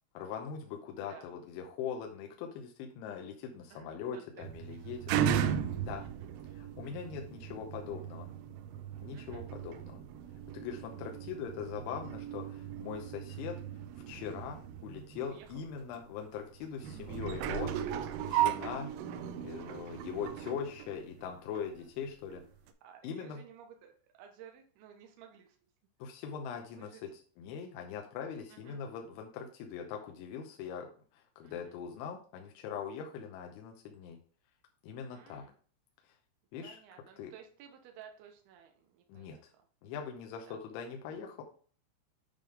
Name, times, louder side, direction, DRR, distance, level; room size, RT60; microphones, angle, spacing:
voice 1, 0.1-5.1 5.8-6.0 6.5-8.3 9.0-10.0 10.5-13.6 14.1-17.8 18.3-18.9 19.4-22.4 23.0-23.4 26.0-34.2 34.8-35.4 36.5-36.8 37.2-37.3 39.1-39.5 39.8-41.4, left 7 dB, 80° left, 3 dB, 2.9 m, -41 dB
voice 2, 3.7-4.4 4.7-4.9 6.0-6.3 9.1-9.4 15.2-15.5 17.8-17.9 18.4-18.6 20.7-20.8 21.7-21.9 22.8-25.6 26.7-27.0 28.5-28.8 31.4-31.8 35.1-35.5 36.6-39.5 40.5-40.6, right 8 dB, 70° right, 3 dB, 2.5 m, -55 dB
sound 1, 4.4-21.7 22.3-22.4, right 10 dB, 85° right, 3.2 m, -37 dB
9.2 x 3.5 x 5.0 m, 0.43 s
omnidirectional pair, 5.9 m